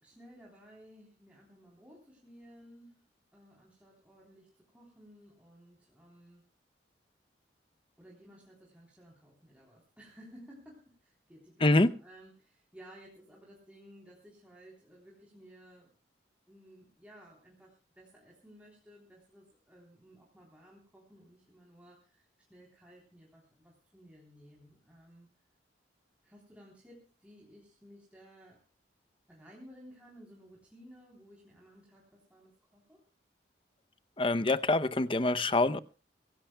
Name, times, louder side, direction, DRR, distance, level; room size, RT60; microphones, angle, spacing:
voice 1, 0.0-3.0 3.3-6.4 8.0-15.9 16.5-25.3 26.2-28.6 29.3-33.0, equal, 5° right, 3.5 m, -56 dB
voice 2, 11.6-11.9 34.2-35.8, left 2 dB, 30° left, 0.6 m, -25 dB
25.0 x 16.0 x 2.3 m
head